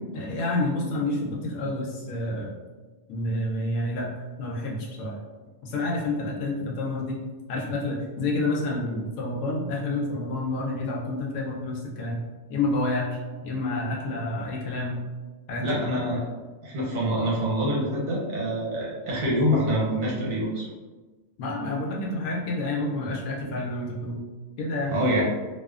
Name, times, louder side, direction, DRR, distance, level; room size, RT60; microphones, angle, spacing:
voice 1, 0.1-2.5 3.1-4.1 4.4-5.2 5.6-7.2 7.5-12.2 12.5-15.0 15.5-16.0 21.4-24.2 24.6-24.9, left 2 dB, 85° left, -2 dB, 1.1 m, -29 dB
voice 2, 15.6-16.2 16.6-20.6 24.9-25.2, equal, 80° right, -5 dB, 1.3 m, -25 dB
2.9 x 2.1 x 2.3 m, 1.3 s
omnidirectional pair, 1.4 m